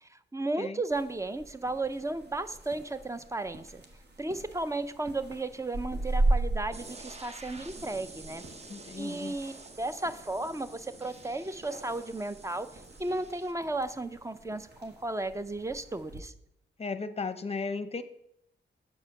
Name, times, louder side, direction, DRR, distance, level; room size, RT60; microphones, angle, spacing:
voice 1, 0.0-3.8 4.2-8.4 9.0-12.7 13.0-16.3, right 2 dB, 15° right, 12 dB, 0.5 m, -34 dB
sound 1, 0.9-16.2, right 2 dB, 55° right, 1.3 m, -37 dB
sound 2, 6.7-13.5, right 2 dB, 30° right, 0.9 m, -49 dB
voice 2, 8.7-9.4 16.8-18.0, left 4 dB, 30° left, 11 dB, 0.7 m, -35 dB
7.2 x 4.8 x 6.4 m, 0.75 s
cardioid pair, 90°, 20 cm